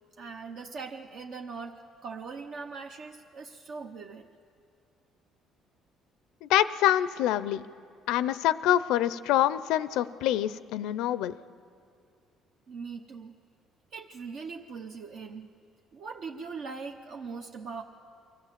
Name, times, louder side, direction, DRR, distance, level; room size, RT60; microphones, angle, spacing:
voice 1, 0.2-4.3 12.7-13.3 13.9-15.5 15.9-17.8, right 5 dB, 55° right, 3 dB, 0.8 m, -41 dB
voice 2, 6.4-7.6 8.1-11.3, left 12 dB, 90° left, 15 dB, 0.5 m, -26 dB
24.0 x 15.0 x 7.5 m, 2.4 s
cardioid pair, 130°, 0 cm